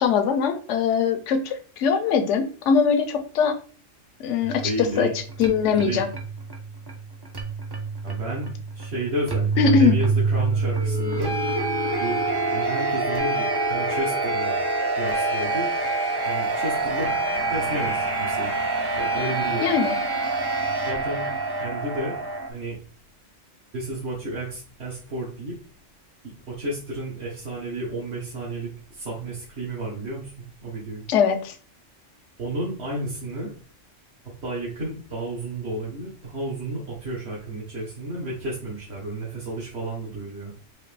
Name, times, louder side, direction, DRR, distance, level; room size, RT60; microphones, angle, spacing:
voice 1, 0.0-3.6 4.2-5.1 5.4-6.1 9.6-10.0 19.6-19.9 31.1-31.5, left 6 dB, 75° left, 8 dB, 1.0 m, -21 dB
sound 1, 4.4-22.5, right 3 dB, 25° right, 0.5 m, -26 dB
voice 2, 4.6-5.2 5.7-6.0 8.0-11.3 12.0-12.2 12.5-14.6 14.9-15.7 16.2-17.1 17.4-18.5 18.9-19.6 20.9-21.2 21.6-22.2 22.5-22.8 23.7-25.6 26.2-31.0 32.4-33.5 34.4-40.5, right 1 dB, 60° right, -5 dB, 1.4 m, -32 dB
4.9 x 2.8 x 3.3 m, 0.40 s
omnidirectional pair, 1.3 m